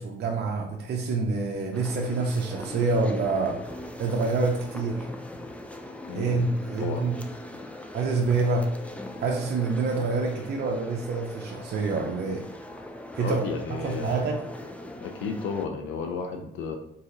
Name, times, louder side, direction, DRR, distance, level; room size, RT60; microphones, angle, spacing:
voice 1, 0.0-5.1 6.1-7.1 7.9-8.7 9.2-12.4 13.1-13.4 13.8-14.4, right 3 dB, 55° right, 0 dB, 0.6 m, -27 dB
sound 1, 1.7-15.7, left 1 dB, 5° left, 0.4 m, -40 dB
voice 2, 6.1-6.5 6.8-7.0 13.2-14.3 15.0-16.8, left 5 dB, 90° left, 4 dB, 0.5 m, -33 dB
3.9 x 2.7 x 3.8 m, 0.74 s
cardioid pair, 90°, 20 cm